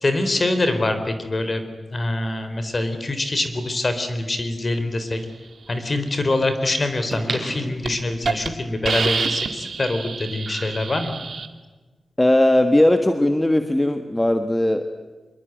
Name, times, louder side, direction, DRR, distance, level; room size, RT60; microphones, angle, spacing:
voice 1, 0.0-1.7 1.9-5.2 5.7-11.2, left 2 dB, 35° left, 9 dB, 3.7 m, -24 dB
sound 1, 3.5-3.6 7.1-8.4 8.9-9.0, right 2 dB, 30° right, 6.7 m, -32 dB
Hiss, 7.3-7.5 7.8-7.9 8.2-8.5 8.8-11.5, right 5 dB, 60° right, 2.2 m, -27 dB
voice 2, 12.2-14.8, left 1 dB, 10° left, 7 dB, 1.4 m, -18 dB
26.0 x 22.5 x 9.1 m, 1.3 s
wide cardioid pair, 125°, 0 cm